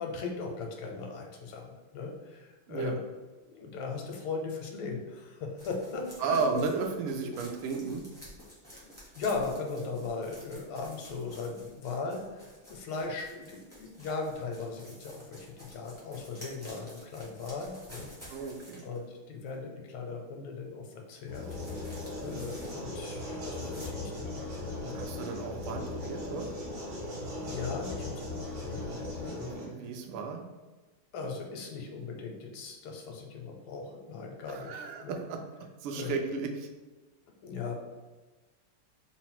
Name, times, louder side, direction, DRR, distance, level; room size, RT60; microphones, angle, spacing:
voice 1, 0.0-3.0 3.4-6.7 7.2-7.3 8.7-18.1 18.8-21.5 21.7-21.9 22.2-24.5 24.8-25.3 27.4-29.8 31.1-35.2 35.9-36.1 37.4-37.7, left 4 dB, 85° left, 2 dB, 1.5 m, -38 dB
voice 2, 2.7-3.0 6.2-8.1 18.3-18.8 24.9-26.5 29.4-30.4 34.5-36.7, right 5 dB, 90° right, 3 dB, 1.5 m, -34 dB
sound 1, 5.6-19.1 19.5-19.6 21.3-23.2 23.6-23.9, equal, 10° right, 0.5 m, -52 dB
sound 2, 21.3-29.7, left 2 dB, 65° right, 1.5 m, -38 dB
3.7 x 2.1 x 4.3 m, 1.2 s
omnidirectional pair, 2.4 m